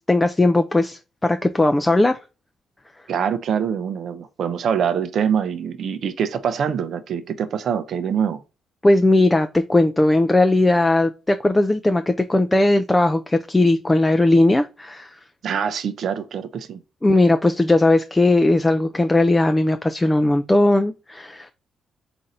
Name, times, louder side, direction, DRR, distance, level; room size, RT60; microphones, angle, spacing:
voice 1, 0.0-2.2 8.8-15.1 17.0-21.5, left 2 dB, 15° left, 0.3 m, -18 dB
voice 2, 3.1-8.4 15.4-16.8, right 7 dB, 60° right, 0.6 m, -24 dB
3.9 x 2.5 x 4.1 m
cardioid pair, 90°, 0 cm